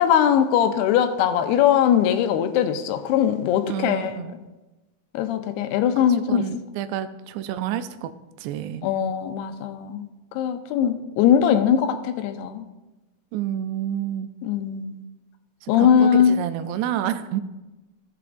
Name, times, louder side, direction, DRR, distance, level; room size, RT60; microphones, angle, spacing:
voice 1, 0.0-4.1 5.1-6.5 8.8-12.6 14.4-15.0 15.7-16.4, left 9 dB, 85° left, 8 dB, 2.6 m, -21 dB
voice 2, 3.7-4.3 6.3-8.1 8.4-8.9 13.3-14.3 15.6-17.4, right 11 dB, 90° right, 11 dB, 2.7 m, -29 dB
16.5 x 7.7 x 2.6 m, 1.1 s
omnidirectional pair, 4.7 m